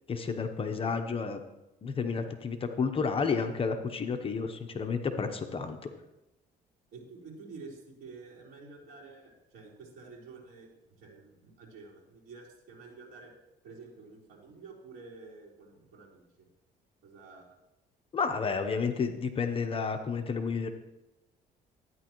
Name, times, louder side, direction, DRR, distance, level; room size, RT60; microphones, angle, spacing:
voice 1, 0.1-1.4 1.8-5.9 18.1-20.7, left 5 dB, 35° left, 7 dB, 0.8 m, -31 dB
voice 2, 6.9-10.7 11.0-13.3 13.6-16.5 17.0-17.6, right 4 dB, 60° right, -5 dB, 3.9 m, -49 dB
12.5 x 9.4 x 3.1 m, 0.95 s
cardioid pair, 110°, 17 cm